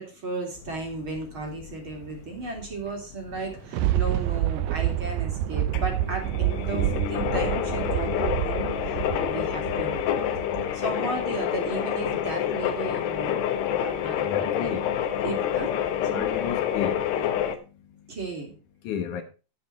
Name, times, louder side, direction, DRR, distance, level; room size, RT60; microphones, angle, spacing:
voice 1, 0.0-10.4 10.7-13.4 13.8-14.8 15.2-15.7 16.1-16.3 18.1-18.5, right 3 dB, 30° right, 3.6 m, -35 dB
sound 1, 0.6-17.6, left 10 dB, 80° left, 3.3 m, -28 dB
Thunder, 3.3-10.9 11.4-11.5, right 14 dB, 80° right, 2.4 m, -28 dB
voice 2, 14.2-14.9 16.1-17.0 18.8-19.2, left 8 dB, 65° left, 2.1 m, -32 dB
10.5 x 10.0 x 4.2 m
omnidirectional pair, 4.8 m